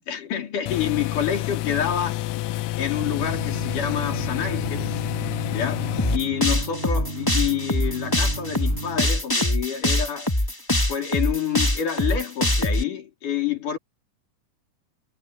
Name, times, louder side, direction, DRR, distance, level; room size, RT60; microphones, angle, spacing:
voice 1, 0.1-2.2 2.8-5.0 5.5-10.3 10.9-13.8, left 9 dB, 70° left, 5.3 m, -28 dB
sound 1, 0.7-6.2, left 16 dB, 85° left, 1.6 m, -28 dB
sound 2, 2.9-9.0, right 3 dB, 60° right, 7.2 m, -35 dB
sound 3, 6.0-12.8, left 1 dB, 10° left, 0.9 m, -23 dB
omnidirectional pair, 3.8 m